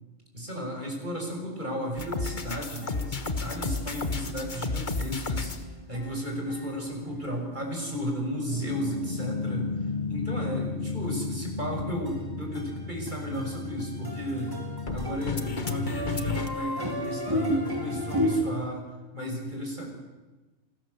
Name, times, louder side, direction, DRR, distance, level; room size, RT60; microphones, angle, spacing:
voice 1, 0.3-9.7 10.1-14.6 14.9-18.9 19.1-19.9, equal, 35° right, 1 dB, 6.4 m, -34 dB
sound 1, 2.0-5.6 8.5-16.5, left 4 dB, 40° left, 1.5 m, -33 dB
sound 2, 2.1-9.7 10.2-10.3 10.7-10.8 11.0-11.1 11.4-11.8 12.0-18.4, equal, 15° right, 3.2 m, -35 dB
27.5 x 18.5 x 8.0 m, 1.2 s
omnidirectional pair, 1.3 m